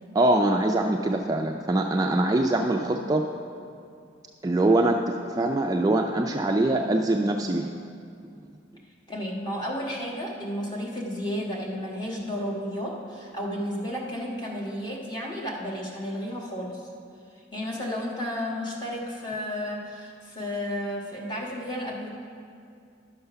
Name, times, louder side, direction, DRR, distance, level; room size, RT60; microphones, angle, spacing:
voice 1, 0.1-3.3 4.4-7.7, right 2 dB, 20° right, 3 dB, 0.3 m, -23 dB
voice 2, 9.1-16.8 17.3-22.1, equal, 25° left, -3 dB, 1.5 m, -32 dB
11.0 x 6.8 x 5.7 m, 2.4 s
head